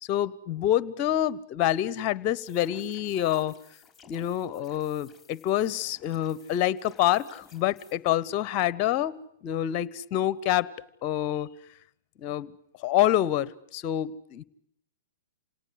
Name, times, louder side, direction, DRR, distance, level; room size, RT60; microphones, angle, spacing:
voice 1, 0.0-3.5 4.1-10.7 11.0-11.5 12.2-12.5 12.8-14.4, left 12 dB, 40° left, 20 dB, 1.0 m, -27 dB
sound 1, 2.4-7.9, left 6 dB, 10° left, 5.5 m, -56 dB
27.5 x 18.5 x 9.7 m, 0.72 s
hypercardioid pair, 115°, 0 cm